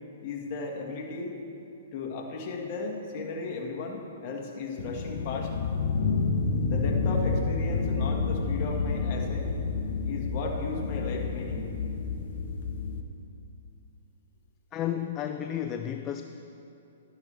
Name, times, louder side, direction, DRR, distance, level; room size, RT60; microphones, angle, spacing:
voice 1, 0.2-1.3 1.9-5.5 6.6-9.5 10.0-11.8, left 3 dB, 40° left, 0 dB, 1.7 m, -35 dB
sound 1, 4.8-13.0, left 4 dB, 60° left, 0.9 m, -29 dB
voice 2, 14.7-16.2, left 10 dB, 25° left, 6 dB, 0.4 m, -32 dB
12.5 x 10.5 x 3.4 m, 2.9 s
hypercardioid pair, 140°, 0 cm